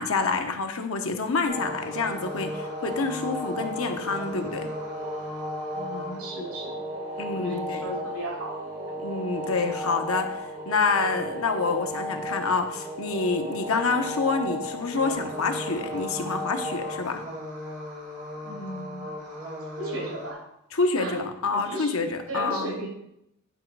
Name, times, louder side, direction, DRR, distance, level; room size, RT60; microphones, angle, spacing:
voice 1, 0.0-4.7 7.2-7.8 9.0-17.2 20.7-22.8, left 4 dB, 75° left, 5 dB, 1.0 m, -27 dB
sound 1, 1.5-20.3, equal, 40° right, 3.9 m, -35 dB
voice 2, 5.7-6.8 7.3-9.0 18.4-19.1 19.8-20.4 20.9-21.2 21.5-21.9 22.3-22.9, right 1 dB, 75° right, -1 dB, 3.2 m, -35 dB
10.5 x 5.1 x 4.7 m, 0.79 s
head